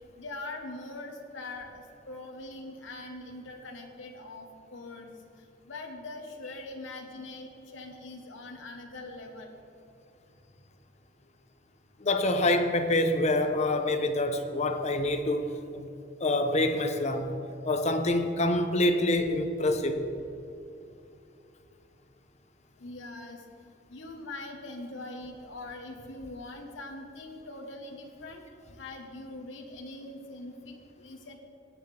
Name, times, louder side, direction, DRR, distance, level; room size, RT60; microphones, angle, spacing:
voice 1, 0.2-5.1 5.6-9.5 22.8-28.4 28.7-31.4, left 2 dB, 85° left, 1.2 m, -42 dB
voice 2, 12.0-15.9 16.2-17.3 17.6-20.0, left 1 dB, 35° left, 0.8 m, -26 dB
17.0 x 9.5 x 3.4 m
head